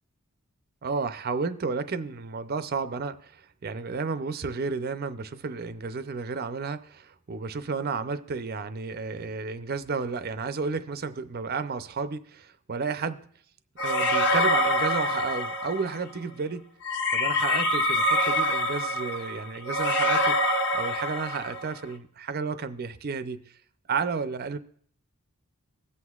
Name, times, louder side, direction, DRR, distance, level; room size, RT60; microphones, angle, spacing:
voice 1, 0.8-13.2 13.8-16.7 17.1-20.4 20.7-23.5 23.9-24.6, right 4 dB, 45° right, 0.5 m, -32 dB
sound 1, 13.8-16.0 16.8-21.7, left 1 dB, 50° left, 0.9 m, -25 dB
24.0 x 8.0 x 2.4 m
head